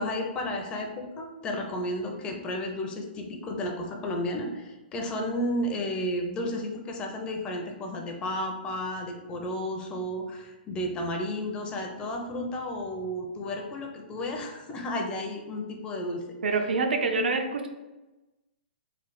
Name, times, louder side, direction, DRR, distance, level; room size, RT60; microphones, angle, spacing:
voice 1, 0.0-16.2 17.1-17.2, left 1 dB, 15° left, 2 dB, 0.4 m, -32 dB
voice 2, 16.4-17.7, right 3 dB, 90° right, 4 dB, 0.5 m, -26 dB
3.2 x 2.0 x 4.0 m, 1.1 s
hypercardioid pair, 150°, 5 cm